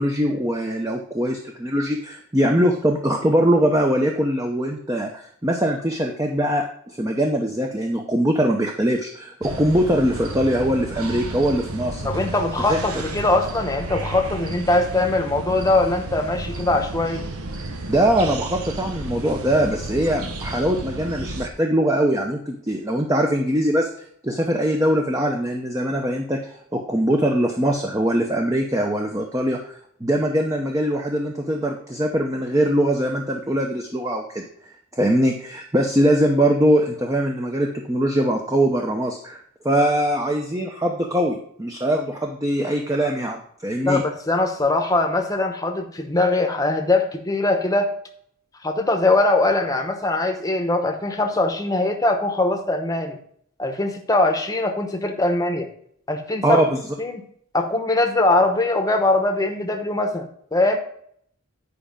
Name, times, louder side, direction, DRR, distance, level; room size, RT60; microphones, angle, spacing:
voice 1, 0.0-12.1 12.7-12.8 17.9-23.9 24.2-29.6 30.0-39.4 39.6-44.0 56.4-56.8, right 1 dB, 15° right, 2 dB, 0.7 m, -22 dB
sound 1, 9.4-21.5, right 2 dB, 80° right, 1.0 m, -32 dB
voice 2, 12.0-17.2 43.8-47.9 48.6-53.2 53.6-55.7 56.1-56.6 57.0-57.2 57.5-60.8, left 2 dB, 15° left, 4 dB, 0.9 m, -21 dB
9.6 x 5.0 x 5.1 m, 0.65 s
head